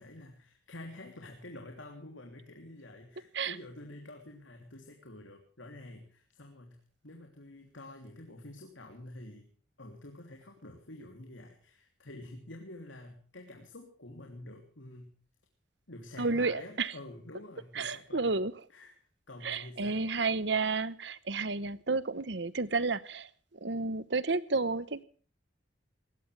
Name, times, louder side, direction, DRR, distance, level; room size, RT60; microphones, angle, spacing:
voice 1, 0.0-9.5 9.8-15.1 15.9-18.3 18.7-18.9 19.3-20.1, left 1 dB, 75° left, 2 dB, 3.1 m, -48 dB
voice 2, 16.2-16.9 17.7-18.5 19.4-23.3 23.6-25.0, right 3 dB, 65° right, 17 dB, 1.1 m, -31 dB
21.0 x 19.0 x 3.4 m, 0.42 s
head